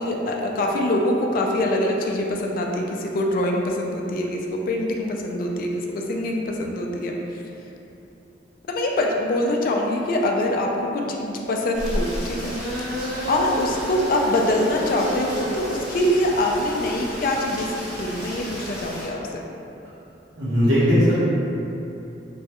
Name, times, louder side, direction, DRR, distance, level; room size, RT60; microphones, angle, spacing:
voice 1, 0.0-7.4 8.7-19.5, left 1 dB, 55° left, 0 dB, 0.3 m, -24 dB
Rain, 11.7-19.1, equal, 5° right, 0.9 m, -34 dB
sound 1, 12.5-15.5, right 1 dB, 65° right, 0.8 m, -31 dB
voice 2, 20.4-21.2, equal, 85° right, -10 dB, 1.1 m, -18 dB
3.0 x 2.3 x 2.8 m, 2.9 s
head